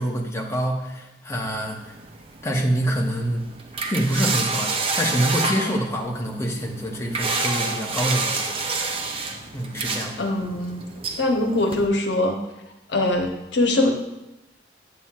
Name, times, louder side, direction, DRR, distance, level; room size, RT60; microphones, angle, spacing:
voice 1, 0.0-1.9 2.4-3.5 3.9-8.6 9.5-10.2, equal, 15° left, 0 dB, 0.8 m, -26 dB
sound 1, 1.4-11.9, right 3 dB, 30° right, 0.6 m, -29 dB
voice 2, 10.2-10.9 11.2-12.4 12.9-13.9, left 2 dB, 70° left, 3 dB, 1.0 m, -22 dB
8.3 x 7.6 x 2.4 m, 0.92 s
head